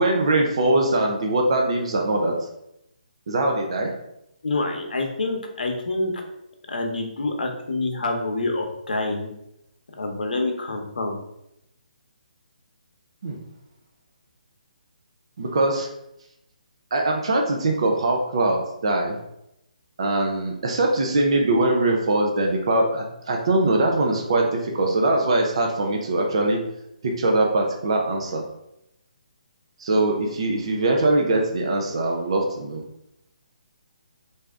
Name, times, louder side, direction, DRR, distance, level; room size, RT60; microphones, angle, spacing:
voice 1, 0.0-2.4 3.3-3.9 13.2-13.4 15.4-15.9 16.9-19.2 20.0-26.6 27.0-28.4 29.8-32.8, right 2 dB, 40° right, 1 dB, 0.5 m, -22 dB
voice 2, 4.4-6.1 6.7-9.3 10.0-11.2, left 2 dB, 80° left, 3 dB, 0.8 m, -27 dB
3.4 x 2.7 x 3.4 m, 0.83 s
hypercardioid pair, 175°, 5 cm